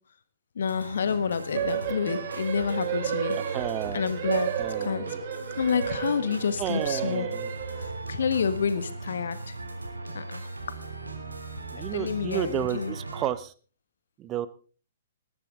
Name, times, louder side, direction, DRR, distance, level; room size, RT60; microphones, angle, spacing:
voice 1, 0.5-3.6 3.9-4.5 4.8-5.1 5.6-7.3 7.8-9.4 10.1-10.4 11.7-12.9, left 6 dB, 60° left, 12 dB, 1.6 m, -29 dB
sound 1, 0.6-13.3, right 2 dB, 80° right, 3.1 m, -39 dB
sound 2, 1.5-8.1, right 9 dB, 45° right, 2.4 m, -32 dB
voice 2, 3.4-4.0 4.6-5.2 6.6-7.5 11.7-13.5 14.2-14.5, right 12 dB, 25° right, 15 dB, 0.8 m, -32 dB
19.5 x 12.5 x 3.7 m, 0.39 s
figure-of-eight pair, 115°, 0 cm